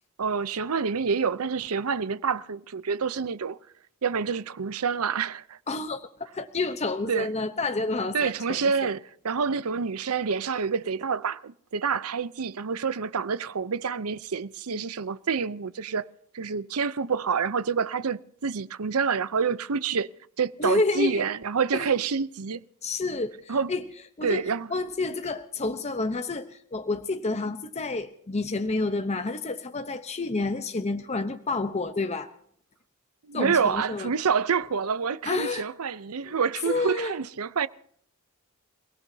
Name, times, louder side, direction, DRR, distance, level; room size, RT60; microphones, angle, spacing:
voice 1, 0.2-3.6 4.0-5.6 7.1-7.3 8.1-16.1 16.3-20.1 20.4-22.6 23.5-23.7 24.2-24.7 33.3-37.7, right 5 dB, 75° right, 0.7 m, -27 dB
voice 2, 5.7-6.1 6.3-8.9 20.6-21.2 21.7-21.9 22.8-23.8 24.2-24.4 24.7-32.3 33.3-34.1 35.2-35.6 36.2-36.4 36.7-37.1, left 3 dB, 30° left, 0.8 m, -29 dB
29.0 x 17.5 x 2.8 m
head